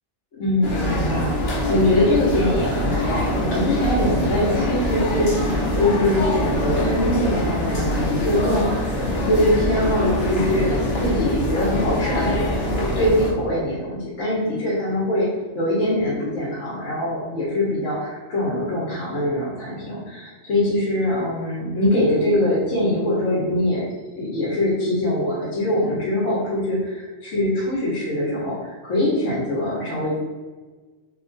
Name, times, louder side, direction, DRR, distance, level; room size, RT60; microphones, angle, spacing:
voice 1, 0.4-15.3 15.5-23.9 24.1-30.2, left 1 dB, 80° left, -7 dB, 1.2 m, -23 dB
sound 1, 0.6-13.3, left 1 dB, 60° left, 1.0 m, -24 dB
3.0 x 2.3 x 3.8 m, 1.4 s
omnidirectional pair, 1.2 m